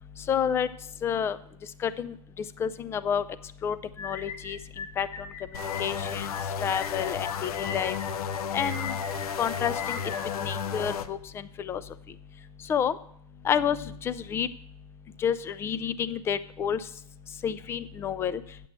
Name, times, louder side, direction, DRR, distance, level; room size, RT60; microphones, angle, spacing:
voice 1, 0.3-0.7 1.0-1.4 1.8-2.1 2.6-3.2 3.6-3.8 4.0-4.6 5.0-5.1 5.8-6.3 6.6-8.0 8.5-9.0 9.4-10.0 10.4-11.2 11.6-11.8 12.7-13.0 13.4-14.5 15.2-16.8 17.4-18.4, left 8 dB, 10° left, 14 dB, 0.3 m, -29 dB
sound 1, 3.9-11.3, left 5 dB, 30° left, 1.8 m, -40 dB
sound 2, 5.5-11.1, left 7 dB, 65° left, 0.7 m, -33 dB
9.0 x 7.4 x 6.1 m, 0.66 s
hypercardioid pair, 125°, 20 cm